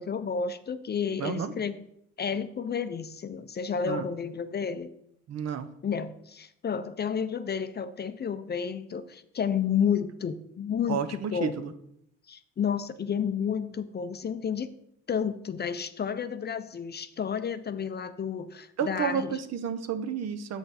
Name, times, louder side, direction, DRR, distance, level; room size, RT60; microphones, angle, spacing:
voice 1, 0.0-1.8 2.2-4.9 5.8-11.6 12.3-14.7 15.1-19.4, left 7 dB, 35° left, 12 dB, 0.5 m, -31 dB
voice 2, 1.2-1.5 3.9-4.0 5.3-5.7 10.9-11.7 18.8-20.6, right 7 dB, 60° right, 10 dB, 0.7 m, -31 dB
7.6 x 5.7 x 4.1 m, 0.76 s
cardioid pair, 90°, 30 cm